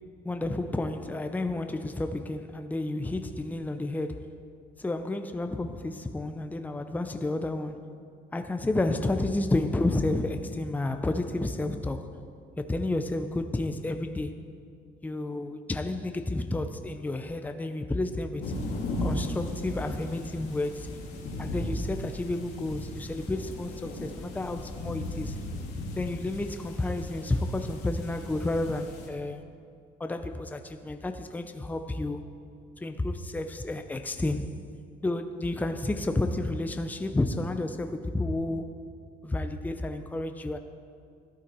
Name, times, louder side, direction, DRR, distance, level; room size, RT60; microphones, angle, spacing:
voice 1, 0.2-4.4 4.8-7.9 8.3-12.1 12.6-14.4 15.0-18.4 19.0-20.9 21.4-25.3 26.0-29.4 30.0-32.2 32.8-34.5 35.0-38.7 39.2-40.6, left 2 dB, 10° left, 0.7 m, -31 dB
sound 1, 18.4-29.1, left 1 dB, 85° left, 2.6 m, -36 dB
14.0 x 12.5 x 4.6 m
cardioid pair, 110°, 17 cm